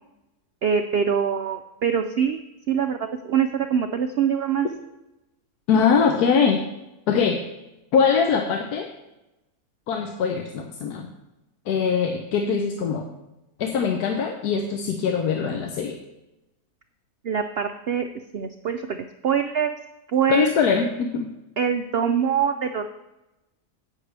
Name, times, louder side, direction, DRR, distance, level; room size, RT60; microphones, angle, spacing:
voice 1, 0.6-4.7 17.2-18.1 18.3-19.7 20.1-20.5 21.6-22.8, right 7 dB, 90° right, 7 dB, 0.5 m, -24 dB
voice 2, 5.7-6.6 7.1-7.4 7.9-8.9 9.9-11.1 11.7-13.1 13.6-16.0 20.3-21.3, left 6 dB, 85° left, 4 dB, 1.3 m, -22 dB
16.0 x 6.5 x 3.3 m, 0.97 s
omnidirectional pair, 1.6 m